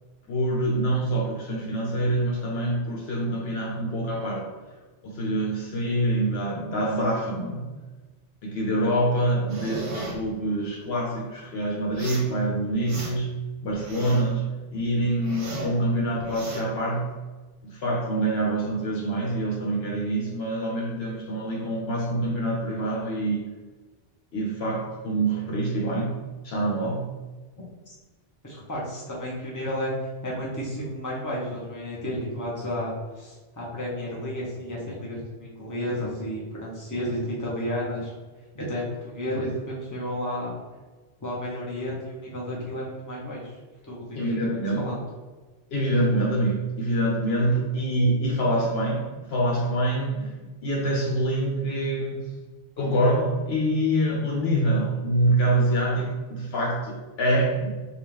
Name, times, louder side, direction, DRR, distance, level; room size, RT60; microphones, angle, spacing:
voice 1, 0.3-4.5 5.0-7.7 8.4-13.3 13.6-17.1 17.7-23.5 24.3-26.2 26.4-27.1 44.1-44.9 45.7-52.3 52.8-57.7, right 1 dB, 70° left, -2 dB, 1.1 m, -25 dB
sound 1, 9.5-10.2 11.9-12.3 12.7-13.4 13.7-14.4 14.7-15.8 16.2-16.6, right 1 dB, 50° right, 0.9 m, -35 dB
voice 2, 28.4-29.9 30.2-38.1 38.5-40.5 41.2-43.4 43.8-45.0, equal, 20° left, -5 dB, 0.9 m, -32 dB
4.6 x 2.4 x 3.5 m, 1.3 s
omnidirectional pair, 1.1 m